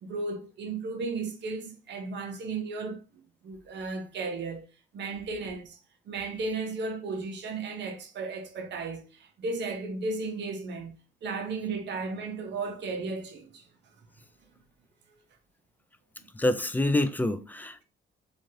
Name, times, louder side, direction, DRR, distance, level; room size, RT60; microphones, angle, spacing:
voice 1, 0.0-4.6 4.9-5.8 6.1-10.9 11.2-13.6 15.1-15.2, right 3 dB, 65° right, 0.8 m, -35 dB
voice 2, 16.4-17.8, left 1 dB, 10° left, 0.3 m, -26 dB
3.1 x 2.4 x 2.7 m
cardioid pair, 90°, 20 cm